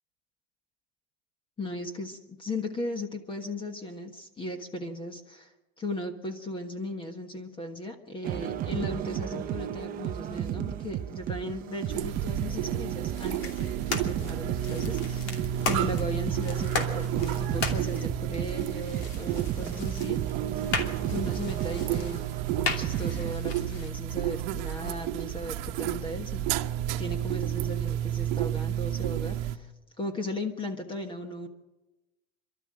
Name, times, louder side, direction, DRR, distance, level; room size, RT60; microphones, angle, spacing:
voice 1, 1.6-20.2 21.1-22.2 22.6-26.5 27.0-29.7 30.0-31.5, left 1 dB, 15° left, 6 dB, 1.4 m, -37 dB
sound 1, 8.2-23.3, right 11 dB, 30° right, 0.6 m, -34 dB
sound 2, 11.9-29.6, right 11 dB, 65° right, 1.0 m, -31 dB
sound 3, 13.1-23.9, left 4 dB, 50° left, 2.7 m, -37 dB
28.0 x 12.5 x 7.7 m, 1.1 s
cardioid pair, 170°, 30 cm